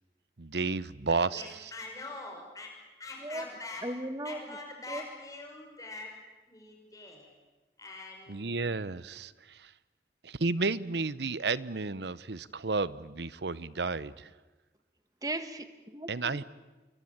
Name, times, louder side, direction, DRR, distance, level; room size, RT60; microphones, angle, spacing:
voice 1, 0.4-1.4 8.3-9.7 10.2-14.3 16.1-16.4, right 3 dB, 80° right, 17 dB, 0.9 m, -32 dB
voice 2, 1.3-2.7 3.0-4.0 4.2-6.2 6.5-7.3 7.8-8.5, left 2 dB, 20° left, 1 dB, 5.9 m, -44 dB
voice 3, 3.8-4.4 4.9-5.0 15.2-16.4, right 1 dB, 20° right, 9 dB, 1.5 m, -37 dB
27.5 x 22.5 x 8.9 m, 1.2 s
head